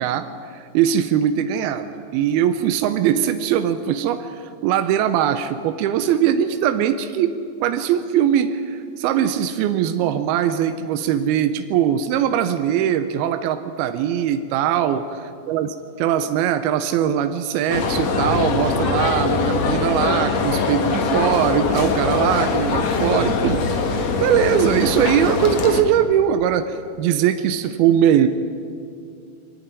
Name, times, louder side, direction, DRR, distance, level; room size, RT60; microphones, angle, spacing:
voice 1, 0.0-15.0 15.5-28.3, right 9 dB, 80° right, 9 dB, 2.3 m, -21 dB
sound 1, 17.7-25.8, left 4 dB, 60° left, 1.8 m, -22 dB
23.0 x 13.5 x 10.0 m, 2.5 s
omnidirectional pair, 5.1 m